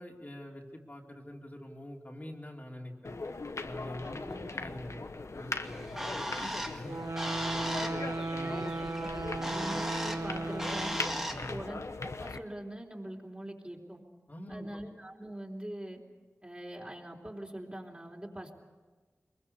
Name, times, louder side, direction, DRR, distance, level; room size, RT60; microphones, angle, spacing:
voice 1, 0.0-3.1 3.6-4.2 4.5-6.1 6.7-7.0 7.4-7.9 8.3-8.6 9.3-9.5 11.3-11.6 14.3-14.7, equal, 35° left, -1 dB, 2.8 m, -45 dB
sound 1, 3.0-12.4, left 3 dB, 75° left, 1.1 m, -40 dB
voice 2, 4.0-4.6 6.2-6.6 7.4-7.9 8.4-9.1 9.4-11.0 11.5-14.0 14.5-16.0 16.4-18.5, right 1 dB, 25° right, -1 dB, 3.7 m, -43 dB
Bird, 5.6-11.5, equal, 10° right, 1.8 m, -38 dB
sound 2, 6.8-11.4, right 2 dB, 80° right, 1.1 m, -36 dB
23.5 x 22.0 x 6.9 m, 1.3 s
wide cardioid pair, 50°, 5 cm